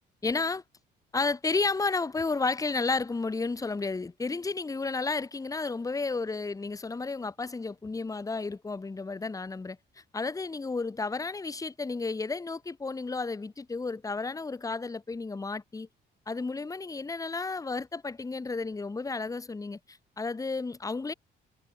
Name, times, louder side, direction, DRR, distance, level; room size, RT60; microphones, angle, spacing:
voice 1, 0.2-0.6 1.1-9.8 10.1-15.9 16.3-21.1, left 3 dB, 15° left, 0.8 m, -32 dB
cardioid pair, 90°, 20 cm